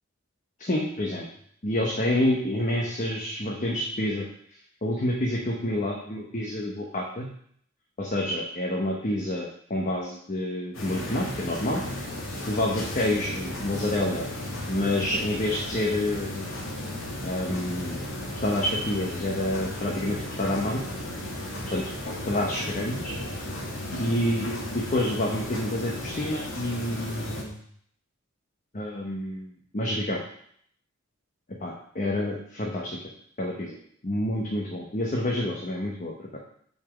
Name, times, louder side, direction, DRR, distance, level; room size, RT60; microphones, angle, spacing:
voice 1, 0.6-1.2 1.6-4.2 4.8-7.3 8.0-11.8 12.5-14.3 14.7-16.5 17.2-18.0 18.4-20.8 21.7-21.9 22.3-23.1 24.0-27.6 28.7-30.2 31.6-33.0 33.4-33.8 34.0-36.4, left 1 dB, 40° left, -1 dB, 0.9 m, -28 dB
sound 1, 10.7-27.4, left 1 dB, 80° left, 1.9 m, -35 dB
6.0 x 4.5 x 6.0 m, 0.65 s
head